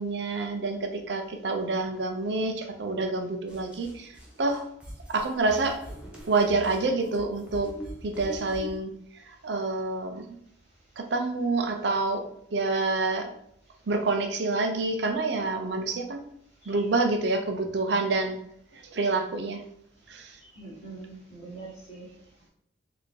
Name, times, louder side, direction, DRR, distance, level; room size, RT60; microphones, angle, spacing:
voice 1, 0.0-4.1 4.4-4.6 5.1-5.8 6.3-7.7 8.0-8.9 9.3-10.2 11.0-12.2 12.5-13.3 13.9-16.2 16.7-18.4 18.7-19.6 20.1-20.4, right 3 dB, 70° right, 5 dB, 0.6 m, -27 dB
sound 1, 3.5-8.8, equal, 5° right, 0.7 m, -43 dB
voice 2, 20.5-22.1, right 3 dB, 35° left, -5 dB, 1.5 m, -43 dB
4.1 x 2.8 x 3.2 m, 0.72 s
head